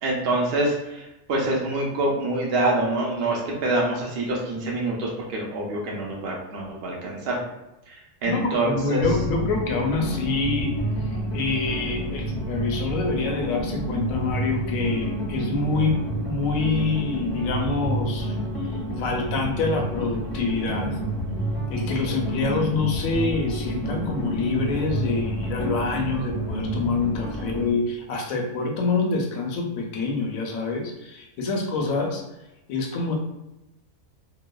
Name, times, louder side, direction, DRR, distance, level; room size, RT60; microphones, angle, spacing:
voice 1, 0.0-7.4 7.9-9.1, right 2 dB, 75° right, -2 dB, 0.5 m, -26 dB
voice 2, 8.3-10.7 11.0-16.0 16.2-20.9 21.7-32.2 32.7-33.1, left 3 dB, 70° left, 1 dB, 0.9 m, -26 dB
sound 1, 9.0-27.7, right 1 dB, 30° left, 0.7 m, -29 dB
2.9 x 2.0 x 2.2 m, 0.94 s
omnidirectional pair, 1.7 m